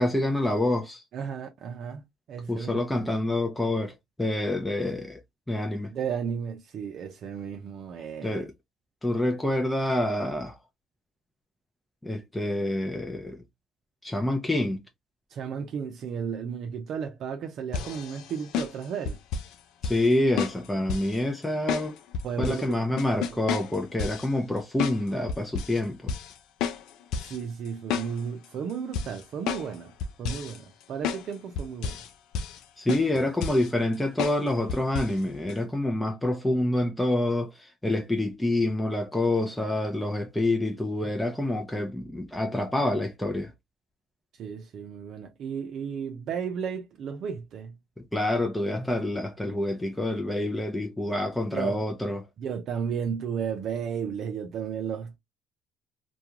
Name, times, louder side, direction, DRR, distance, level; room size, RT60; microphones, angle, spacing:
voice 1, 0.0-1.0 2.5-5.2 5.5-5.9 8.2-8.5 9.0-10.6 12.0-13.4 14.0-14.8 19.8-22.0 22.4-26.1 32.8-43.5 48.1-52.3, left 1 dB, 10° left, 0.5 m, -27 dB
voice 2, 1.1-2.0 2.3-2.8 5.9-8.5 15.3-19.2 22.2-22.8 27.2-29.9 30.2-32.0 44.4-47.7 51.5-51.8 52.4-55.2, right 7 dB, 60° right, 0.5 m, -33 dB
sound 1, 17.7-19.5 19.8-20.1 20.4-21.2 21.7-22.6 23.0-24.3 24.8-25.0 25.3-25.8 26.1-26.3 26.6-27.4 27.7-28.4 28.9-29.7 30.0-30.6 31.0-31.2 31.6-32.1 32.3-32.6 32.9-33.7 34.2-34.4 34.7-35.1 35.5-35.6, left 6 dB, 75° left, 0.4 m, -31 dB
2.3 x 2.3 x 2.8 m
supercardioid pair, 70°, 0 cm